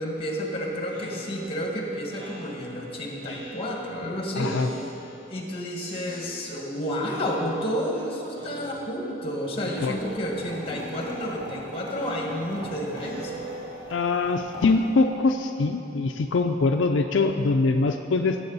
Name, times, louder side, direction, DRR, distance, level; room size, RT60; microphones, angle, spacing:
voice 1, 0.0-4.6 5.3-13.3, equal, 30° left, -1 dB, 1.8 m, -30 dB
Speech synthesizer, 0.9-4.0 4.4-5.4 5.7-6.8 7.0-8.0 8.3-9.2 9.5-10.3 10.6-14.2, right 1 dB, 65° right, 2.0 m, -44 dB
voice 2, 4.4-4.7 9.8-10.0 13.9-18.4, left 3 dB, 80° left, 4 dB, 0.4 m, -23 dB
sound 1, 9.7-15.2, equal, 30° right, 2.8 m, -42 dB
17.0 x 7.7 x 4.1 m, 3.0 s
head